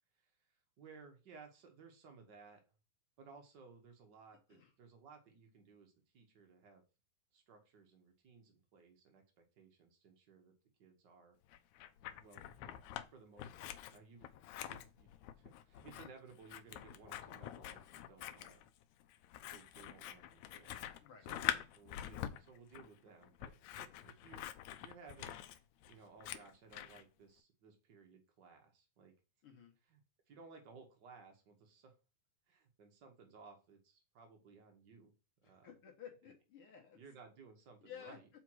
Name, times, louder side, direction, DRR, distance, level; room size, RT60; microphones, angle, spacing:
voice 1, 0.8-2.6 3.2-6.8 7.3-10.5 10.8-11.4 12.2-12.8 13.1-14.3 14.6-15.1 15.3-18.6 19.5-20.8 21.2-25.4 25.9-29.1 29.9-30.0 30.3-31.9 32.5-35.1 35.4-35.8 36.9-38.3, right 5 dB, 55° right, 4 dB, 1.2 m, -59 dB
Scissors, 11.5-13.1 13.4-27.0, left 12 dB, 80° left, 1.8 m, -45 dB
voice 2, 21.0-21.6 29.4-29.7 35.4-37.0 37.8-38.2, left 8 dB, 55° left, 2 dB, 1.7 m, -54 dB
5.0 x 4.5 x 6.1 m, 0.32 s
omnidirectional pair, 3.7 m